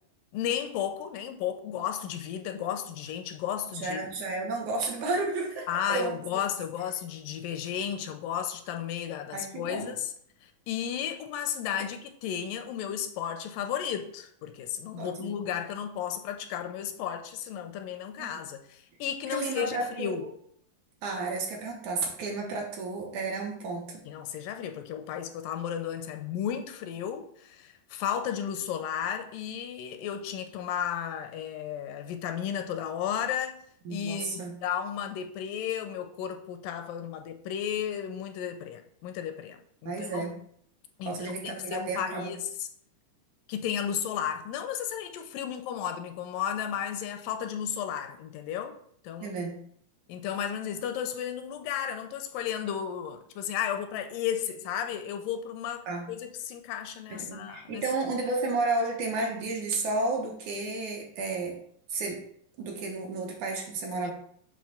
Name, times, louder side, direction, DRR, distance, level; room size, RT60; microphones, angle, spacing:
voice 1, 0.3-4.0 5.7-10.1 10.4-20.3 24.1-33.6 33.9-40.3 41.0-41.3 41.7-42.7 43.5-48.8 49.0-49.3 50.1-57.8 64.0-64.1, left 9 dB, 85° left, 2.3 m, -33 dB
voice 2, 3.7-6.4 9.3-9.9 15.0-15.4 18.2-18.4 19.3-20.3 21.0-24.0 33.9-34.6 39.9-40.3 41.1-42.3 49.2-49.6 55.9-56.1 57.1-61.6 61.9-62.2 62.6-64.1, right 3 dB, 70° right, 2.3 m, -32 dB
7.6 x 3.0 x 5.7 m
omnidirectional pair, 3.9 m